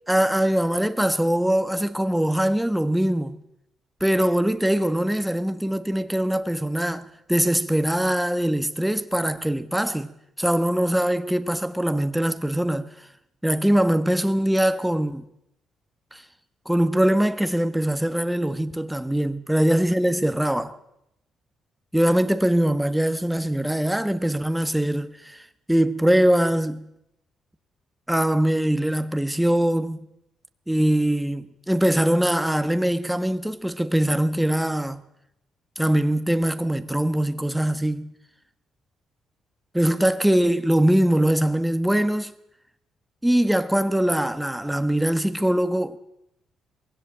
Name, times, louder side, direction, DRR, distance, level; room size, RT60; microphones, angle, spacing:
voice 1, 0.1-3.4 4.0-10.1 10.4-12.9 13.4-15.2 16.1-16.2 16.6-20.8 21.9-25.4 25.7-26.9 28.1-30.0 30.7-35.0 35.8-38.1 39.7-42.3 43.2-46.0, right 1 dB, 5° right, 1.3 m, -22 dB
21.0 x 16.5 x 8.7 m
cardioid pair, 90°, 0 cm